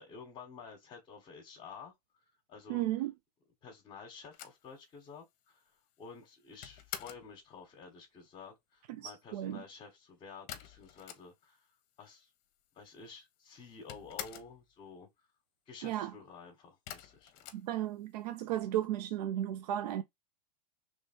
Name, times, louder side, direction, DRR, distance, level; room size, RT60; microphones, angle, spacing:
voice 1, 0.0-2.2 2.5-2.8 3.6-5.6 6.0-11.7 12.0-12.3 12.7-15.1 15.7-17.5, left 5 dB, 30° left, 1.2 m, -51 dB
voice 2, 2.7-3.1 8.9-9.6 15.8-16.1 17.5-20.0, right 12 dB, 75° right, 0.4 m, -34 dB
sound 1, 4.3-7.3 10.5-11.6 11.9-12.0 12.2-13.0 13.3-14.6 16.9-18.3, left 11 dB, 45° left, 0.8 m, -47 dB
3.2 x 3.1 x 4.3 m
supercardioid pair, 135°, 21 cm